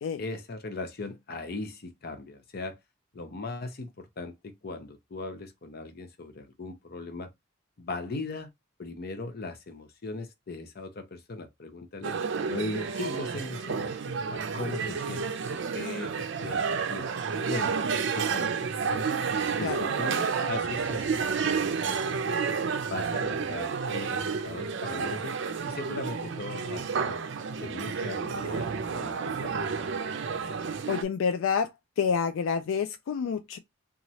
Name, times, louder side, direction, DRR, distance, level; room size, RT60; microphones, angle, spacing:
voice 1, 0.2-2.8 3.1-7.3 7.8-8.5 8.8-12.2 12.5-17.1 17.5-18.5 18.9-19.1 19.6-22.4 22.9-25.4 25.7-27.2 27.6-29.6, left 3 dB, 55° left, 0.6 m, -39 dB
sound 1, 12.0-31.0, right 5 dB, 65° right, 0.5 m, -30 dB
voice 2, 30.9-31.7 32.0-33.6, left 6 dB, 85° left, 0.3 m, -28 dB
3.0 x 2.4 x 2.7 m
head